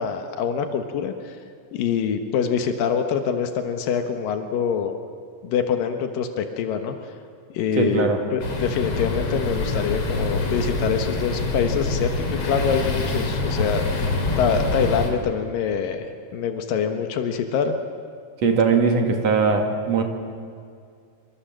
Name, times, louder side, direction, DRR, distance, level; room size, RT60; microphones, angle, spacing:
voice 1, 0.0-1.4 1.7-4.9 5.4-7.0 7.5-16.1 16.3-17.7, left 7 dB, 85° left, 6 dB, 3.0 m, -25 dB
voice 2, 7.8-8.2 18.4-20.0, right 4 dB, 50° right, 4 dB, 3.2 m, -20 dB
sound 1, 8.4-15.1, left 2 dB, 45° left, 3.4 m, -25 dB
26.5 x 25.5 x 7.6 m, 2.3 s
omnidirectional pair, 3.9 m